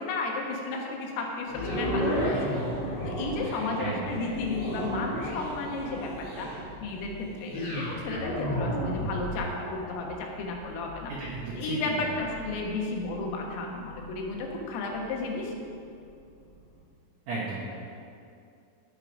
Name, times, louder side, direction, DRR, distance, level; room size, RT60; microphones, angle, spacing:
voice 1, 0.0-2.3 2.8-6.5 6.8-11.1 11.6-15.5, left 3 dB, 85° left, 0 dB, 3.9 m, -33 dB
sound 1, 1.5-15.7 16.2-16.3, equal, 40° left, 3.6 m, -34 dB
voice 2, 3.4-4.3 11.1-11.8 17.3-17.6, right 3 dB, 80° right, -5 dB, 1.8 m, -35 dB
10.0 x 9.4 x 5.2 m, 2.5 s
omnidirectional pair, 5.8 m